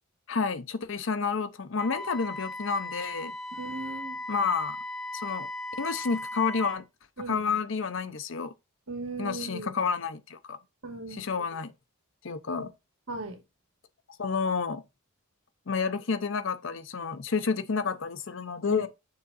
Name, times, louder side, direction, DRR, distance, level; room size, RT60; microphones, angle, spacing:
voice 1, 0.3-3.3 4.3-4.8 5.1-5.5 5.8-6.8 7.3-8.5 9.2-10.6 11.1-11.7 12.2-12.7 14.2-14.8 15.7-18.9, left 5 dB, 60° left, 0.6 m, -30 dB
Wind instrument woodwind instrument, 1.8-6.8, left 2 dB, ahead, 0.5 m, -37 dB
voice 2, 3.5-4.2 7.2-7.5 8.9-9.7 10.8-11.5 12.5-12.7 13.1-13.4 18.7-18.8, right 2 dB, 75° right, 2.1 m, -38 dB
6.8 x 3.6 x 4.0 m
head